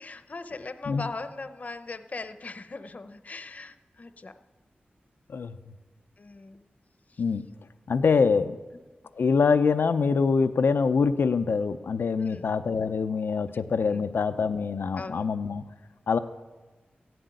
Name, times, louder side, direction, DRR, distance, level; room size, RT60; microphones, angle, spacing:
voice 1, 0.0-4.3 6.2-6.6 7.1-7.2 12.2-12.5 13.5-14.0 15.0-15.3, left 3 dB, 45° left, 10 dB, 0.8 m, -40 dB
voice 2, 7.9-8.6 9.2-15.6 16.1-16.2, left 5 dB, 85° left, 10 dB, 0.6 m, -24 dB
15.5 x 7.8 x 9.3 m, 1.2 s
wide cardioid pair, 110°, 4 cm